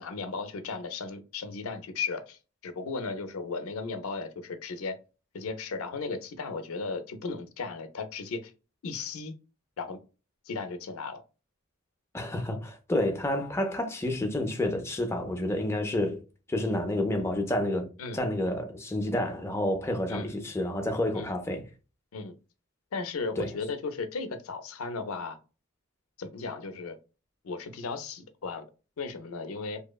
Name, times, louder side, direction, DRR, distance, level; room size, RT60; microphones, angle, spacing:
voice 1, 0.0-5.0 5.3-8.5 8.8-9.3 9.8-10.0 10.5-11.2 18.0-18.2 20.1-20.3 21.1-21.3 22.1-22.4 22.9-25.4 26.2-27.0 27.4-28.6 29.0-29.8, left 4 dB, 80° left, 0.4 m, -36 dB
voice 2, 12.1-16.2 16.5-17.9 18.1-21.7 23.4-23.5, left 1 dB, 10° left, 0.3 m, -29 dB
2.7 x 2.0 x 2.2 m
head